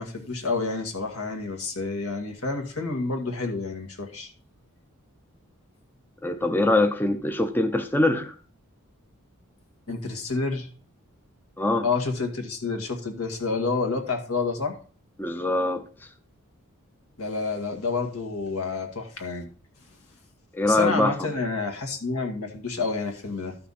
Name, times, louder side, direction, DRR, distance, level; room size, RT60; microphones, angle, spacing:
voice 1, 0.0-4.3 9.9-10.7 11.8-14.8 17.2-19.5 20.6-23.6, left 3 dB, 80° left, 2.0 m, -29 dB
voice 2, 6.2-8.4 11.6-11.9 15.2-15.9 20.5-21.1, left 2 dB, 10° left, 0.5 m, -23 dB
12.5 x 5.9 x 4.2 m
head